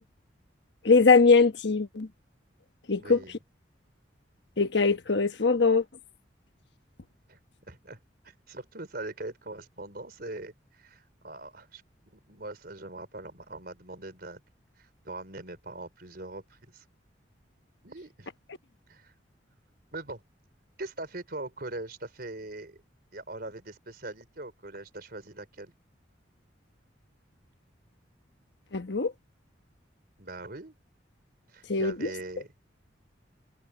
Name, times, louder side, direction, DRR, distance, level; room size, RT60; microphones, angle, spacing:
voice 1, 0.8-2.1 2.9-3.2 4.6-5.8 28.7-29.1 31.7-32.1, left 4 dB, 65° left, 1.2 m, -22 dB
voice 2, 3.0-3.4 7.3-7.4 7.7-14.4 14.8-16.8 17.8-18.3 18.9-19.1 19.9-20.2 20.8-22.8 23.1-25.7 30.2-30.8 31.5-32.5, right 2 dB, 50° right, 4.2 m, -41 dB
head